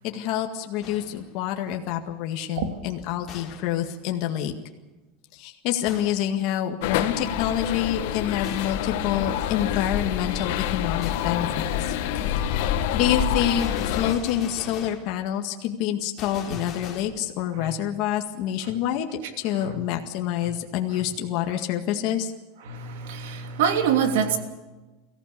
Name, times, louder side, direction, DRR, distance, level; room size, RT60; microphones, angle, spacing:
voice 1, 0.0-4.5 5.3-12.0 12.4-22.3, left 10 dB, 50° left, 3 dB, 1.9 m, -27 dB
Gunshot gunfire, 0.8-1.3 3.3-3.8 5.9-6.3 8.4-8.9 11.0-11.4 13.6-15.1 16.2-17.0, left 7 dB, 30° left, 3.6 m, -41 dB
sound 1, 6.8-14.1, left 10 dB, 75° left, 2.0 m, -27 dB
voice 2, 22.7-24.4, right 7 dB, 85° right, 6 dB, 3.0 m, -24 dB
23.0 x 15.5 x 8.5 m, 1.1 s
supercardioid pair, 155°, 0 cm